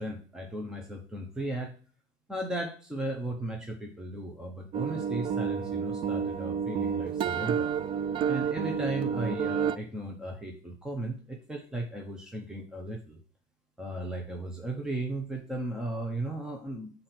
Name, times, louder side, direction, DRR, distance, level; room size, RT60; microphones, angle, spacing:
voice 1, 0.0-1.7 2.3-7.7 8.3-13.2 13.8-16.9, right 1 dB, 5° right, 2 dB, 0.9 m, -36 dB
sound 1, 4.7-9.8, right 7 dB, 35° right, 0.4 m, -30 dB
6.4 x 3.9 x 5.9 m, 0.40 s
cardioid pair, 150°, 15 cm